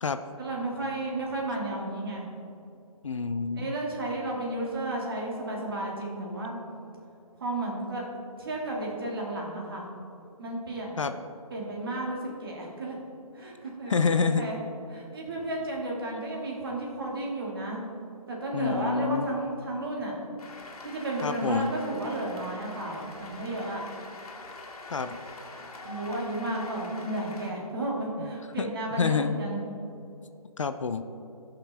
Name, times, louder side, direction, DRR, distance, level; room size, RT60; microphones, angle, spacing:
voice 1, 0.4-2.3 3.5-6.6 7.4-8.0 8.4-9.8 10.4-11.0 11.5-12.9 13.3-14.6 14.9-17.8 18.3-20.2 20.8-23.8 25.6-29.6, right 1 dB, 40° right, -2 dB, 2.0 m, -33 dB
voice 2, 3.0-3.7 11.0-11.1 13.9-14.5 18.5-19.3 21.2-21.7 24.9-25.2 28.2-28.3 28.6-28.7 29.0-29.4 30.6-31.0, left 5 dB, 55° left, 10 dB, 0.5 m, -27 dB
Cheering / Applause, 20.4-27.5, left 3 dB, 80° left, 2.0 m, -45 dB
17.0 x 5.8 x 3.4 m, 2.7 s
hypercardioid pair, 175°, 19 cm